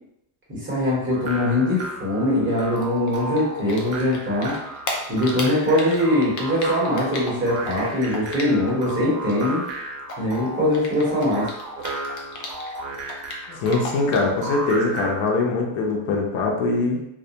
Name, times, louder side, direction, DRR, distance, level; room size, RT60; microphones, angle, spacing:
voice 1, 0.5-4.5 5.1-9.6 10.2-11.5, left 1 dB, 25° right, -7 dB, 0.9 m, -22 dB
sound 1, 1.1-15.3, right 2 dB, 60° right, 0.6 m, -34 dB
Typing, 2.7-4.2 4.4-8.9 9.2-12.7 13.0-14.3, left 2 dB, 40° left, 0.4 m, -34 dB
voice 2, 13.5-17.1, left 3 dB, 75° left, 0 dB, 0.7 m, -22 dB
2.2 x 2.1 x 2.7 m, 0.81 s
cardioid pair, 160°, 49 cm